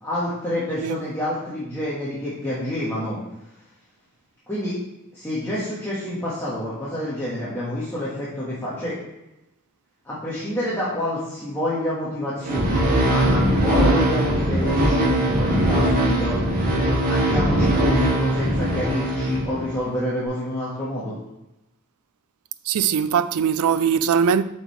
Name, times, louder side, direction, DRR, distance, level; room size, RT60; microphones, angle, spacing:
voice 1, 0.0-3.2 4.5-4.8 5.1-8.9 10.0-16.4 17.0-21.1, left 1 dB, 10° left, 1.4 m, -28 dB
sound 1, 12.4-19.8, right 1 dB, 40° right, 2.0 m, -20 dB
voice 2, 22.7-24.4, right 7 dB, 75° right, 0.3 m, -20 dB
7.1 x 5.4 x 3.2 m
head